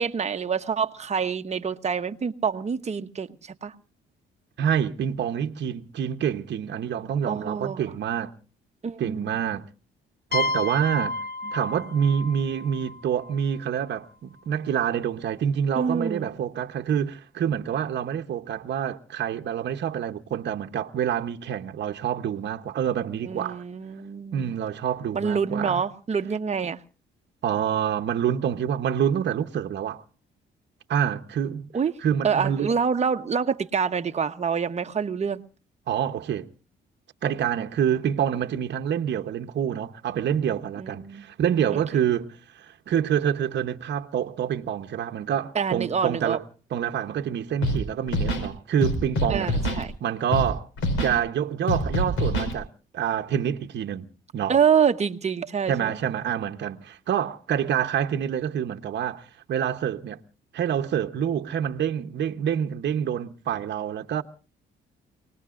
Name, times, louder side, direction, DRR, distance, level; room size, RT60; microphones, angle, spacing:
voice 1, 0.0-3.3 3.6-3.7 7.2-7.8 8.8-9.3 15.8-16.3 23.2-24.5 25.1-26.8 31.7-31.9 32.2-35.4 40.8-41.3 41.7-41.8 45.5-46.4 49.3-49.9 54.5-56.0, right 6 dB, 35° right, 1.0 m, -26 dB
voice 2, 4.6-8.3 9.0-9.7 10.3-11.2 11.5-23.6 24.3-25.8 27.4-30.0 30.9-31.7 32.0-32.7 35.9-36.5 37.2-42.3 42.5-46.4 46.7-49.5 50.0-50.7 51.0-52.7 52.9-54.1 54.3-54.6 55.7-60.2 60.5-64.2, right 9 dB, 60° right, 1.0 m, -27 dB
sound 1, 10.3-13.9, left 2 dB, 50° left, 1.4 m, -32 dB
Scratching (performance technique), 47.6-47.8 48.1-48.5 48.8-49.8 50.3-50.5 50.8-51.2 51.7-52.5, left 1 dB, 85° left, 4.9 m, -25 dB
29.5 x 19.0 x 2.5 m
cardioid pair, 90°, 20 cm